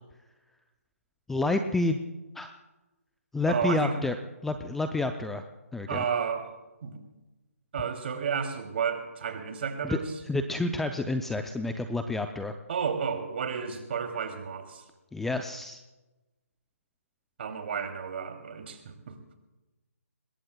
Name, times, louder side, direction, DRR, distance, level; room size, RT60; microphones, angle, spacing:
voice 1, 1.3-2.0 2.4-2.5 3.3-4.2 4.4-5.4 5.7-6.0 9.8-10.0 10.3-12.5 15.1-15.8, left 2 dB, 5° left, 7 dB, 0.4 m, -29 dB
voice 2, 3.5-4.0 5.9-6.6 6.8-7.0 7.7-10.1 12.7-14.8 17.4-19.2, right 6 dB, 45° right, 5 dB, 2.7 m, -32 dB
26.0 x 21.0 x 2.3 m, 1.1 s
figure-of-eight pair, 150°, 8 cm